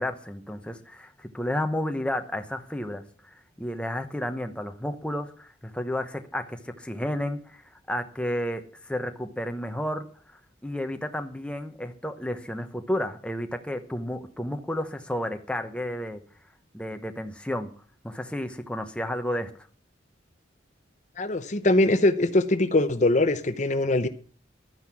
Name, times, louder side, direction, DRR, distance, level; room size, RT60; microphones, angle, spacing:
voice 1, 0.0-3.0 3.6-7.6 7.9-10.0 10.6-16.2 16.7-17.7 18.0-19.5, left 1 dB, 5° left, 6 dB, 1.0 m, -31 dB
voice 2, 21.2-24.1, left 2 dB, 40° left, 10 dB, 0.7 m, -22 dB
12.5 x 9.6 x 6.1 m, 0.43 s
head